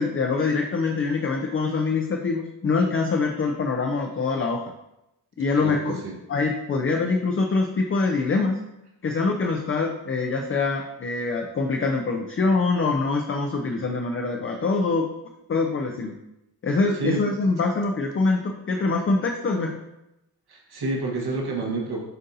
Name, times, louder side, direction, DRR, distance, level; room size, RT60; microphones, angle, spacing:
voice 1, 0.0-4.6 5.4-6.0 6.3-8.6 9.0-15.0 15.5-16.1 16.6-19.7, left 3 dB, 30° left, 2 dB, 0.5 m, -24 dB
voice 2, 5.5-6.2 16.9-17.2 20.5-22.0, right 3 dB, 65° right, -1 dB, 1.3 m, -29 dB
7.7 x 2.6 x 2.6 m, 0.89 s
cardioid pair, 55°, 42 cm